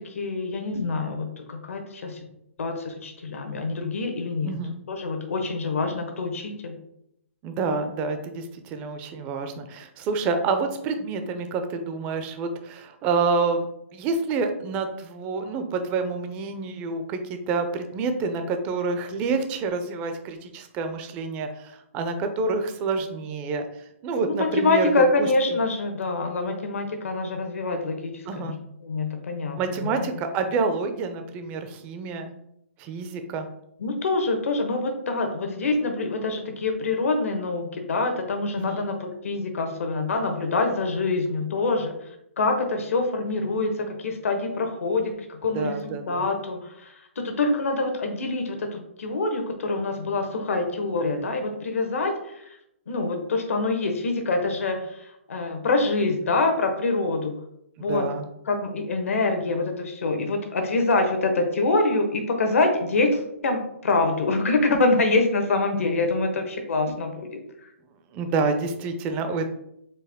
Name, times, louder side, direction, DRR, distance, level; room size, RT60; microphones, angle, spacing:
voice 1, 0.0-2.2 2.6-4.6 4.9-6.8 24.2-28.5 28.8-30.1 33.8-41.9 42.4-52.6 52.9-57.3 57.8-58.0 58.5-67.4, left 3 dB, 75° left, 5 dB, 1.1 m, -25 dB
voice 2, 4.4-4.8 7.4-23.7 24.0-24.9 25.2-25.3 28.3-28.6 29.6-32.3 32.8-33.5 38.5-38.8 45.5-46.3 57.8-58.3 68.1-69.5, right 4 dB, 15° right, 7 dB, 0.4 m, -28 dB
4.5 x 3.2 x 3.4 m, 0.78 s
hypercardioid pair, 165°, 7 cm